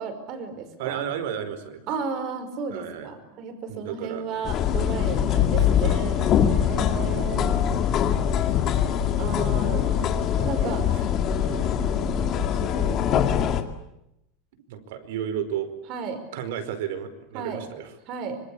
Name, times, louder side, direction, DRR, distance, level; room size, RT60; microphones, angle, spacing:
voice 1, 0.0-1.0 1.9-7.5 9.2-9.8 10.4-10.8 12.0-13.0 15.9-16.2 17.3-17.7 18.1-18.4, right 5 dB, 35° right, 9 dB, 5.3 m, -34 dB
voice 2, 0.8-1.9 2.7-3.1 3.7-4.6 4.9-6.3 6.7-7.2 8.0-11.0 11.4-12.1 14.7-15.7 16.3-18.0, right 9 dB, 70° right, 11 dB, 4.8 m, -35 dB
sound 1, 4.4-13.6, left 9 dB, 30° left, 2.2 m, -23 dB
26.0 x 26.0 x 8.7 m, 0.83 s
supercardioid pair, 180°, 0 cm